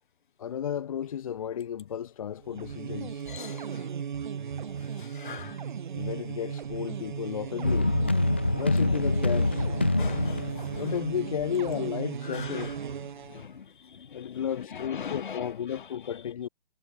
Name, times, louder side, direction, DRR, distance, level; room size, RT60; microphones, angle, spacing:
voice 1, 0.4-3.3 5.3-5.5 5.9-7.9 8.5-9.7 10.7-12.8 14.1-16.5, left 9 dB, 30° left, 1.0 m, -33 dB
sound 1, 2.4-13.5, right 7 dB, 45° right, 0.9 m, -36 dB
voice 2, 3.3-3.8 5.0-5.6 10.0-10.8 12.3-12.7 13.3-13.6 13.9-14.4 14.7-15.5, left 7 dB, 50° left, 1.5 m, -41 dB
sound 2, 7.6-11.7, left 2 dB, 10° left, 0.4 m, -26 dB
figure-of-eight pair, 145°, 33 cm